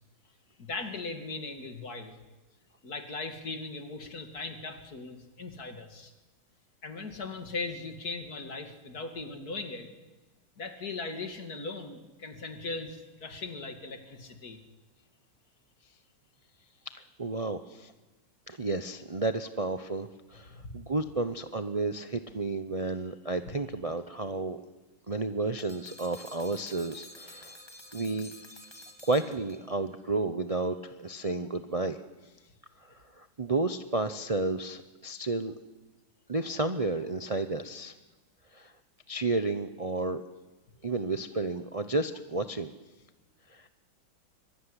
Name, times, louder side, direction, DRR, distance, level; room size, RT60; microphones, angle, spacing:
voice 1, 0.6-2.2 2.8-6.1 6.8-9.9 10.6-14.6 20.5-20.8, left 3 dB, 45° left, 6 dB, 2.8 m, -39 dB
voice 2, 16.9-17.9 18.5-24.6 25.1-27.6 27.9-28.3 29.1-32.0 32.8-35.5 36.3-37.9 38.5-38.7 39.1-40.2 40.8-42.7 43.5-43.7, right 3 dB, 65° right, 9 dB, 0.3 m, -32 dB
sound 1, 25.6-29.9, left 1 dB, 10° left, 2.3 m, -50 dB
24.5 x 23.0 x 10.0 m, 1.1 s
omnidirectional pair, 2.2 m